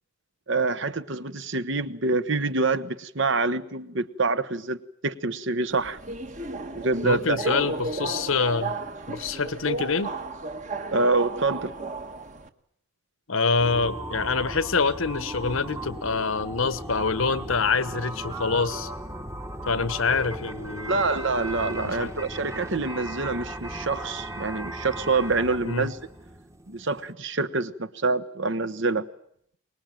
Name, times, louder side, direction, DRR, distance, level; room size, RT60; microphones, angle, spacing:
voice 1, 0.5-4.8 5.0-6.0 6.7-7.5 10.9-11.7 20.9-26.0 26.7-29.1, right 3 dB, 55° right, 13 dB, 1.1 m, -26 dB
Subway metro underground, 5.7-12.5, right 3 dB, 35° right, 1.4 m, -34 dB
voice 2, 7.0-8.7 9.1-10.1 13.3-18.9 19.7-21.0 21.8-22.1 25.6-25.9, left 4 dB, 65° left, 15 dB, 1.2 m, -26 dB
sound 1, 13.6-27.1, right 1 dB, 15° right, 1.2 m, -37 dB
24.5 x 21.0 x 9.1 m, 0.69 s
head